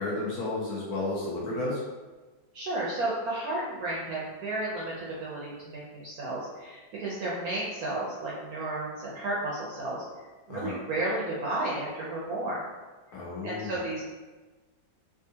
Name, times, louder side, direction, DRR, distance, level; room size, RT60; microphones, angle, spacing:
voice 1, 0.0-1.8 10.5-10.8 13.1-13.8, left 2 dB, 65° left, -5 dB, 1.0 m, -32 dB
voice 2, 2.5-4.9 5.2-10.0 10.5-12.6 13.4-14.0, right 2 dB, 70° right, -5 dB, 0.9 m, -32 dB
3.6 x 2.3 x 2.7 m, 1.3 s
omnidirectional pair, 2.1 m